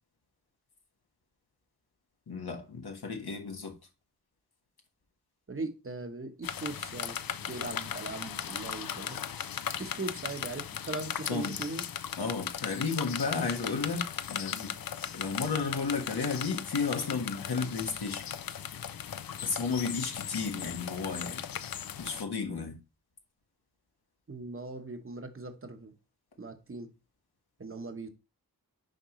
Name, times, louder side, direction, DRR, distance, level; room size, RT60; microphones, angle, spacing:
voice 1, 2.3-3.7 11.3-11.6 12.2-14.7 15.1-18.3 19.4-21.4 22.0-22.8, left 4 dB, 80° left, 1.5 m, -33 dB
voice 2, 5.5-7.2 7.5-9.2 9.8-11.9 24.3-25.9 26.4-26.9 27.6-28.1, right 3 dB, 35° right, 1.0 m, -39 dB
sound 1, 6.4-22.2, left 9 dB, 65° left, 0.5 m, -37 dB
6.5 x 5.2 x 3.1 m
wide cardioid pair, 80°, 38 cm